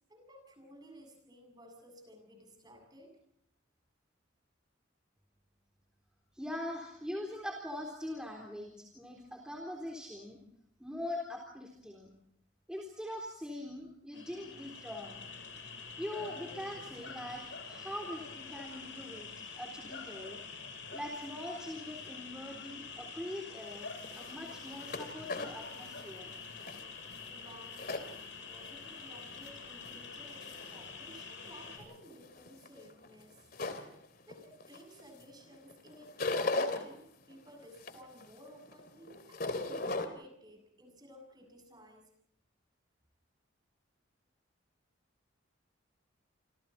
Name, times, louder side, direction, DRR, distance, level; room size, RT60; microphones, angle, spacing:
voice 1, 0.1-3.2 27.3-28.0 28.5-33.5 34.2-42.1, equal, 20° right, 4 dB, 7.4 m, -55 dB
voice 2, 6.3-10.4 10.8-12.1 12.7-15.2 16.0-19.3 19.6-20.4 20.9-26.3, left 1 dB, 5° right, 0 dB, 3.8 m, -42 dB
sound 1, 14.1-31.8, left 5 dB, 70° left, 7.7 m, -46 dB
sound 2, 23.6-28.7 29.1-29.9 30.4-30.9 31.4-35.2 35.5-36.8 37.3-40.1, left 2 dB, 50° left, 3.0 m, -38 dB
29.0 x 27.0 x 4.3 m, 0.73 s
head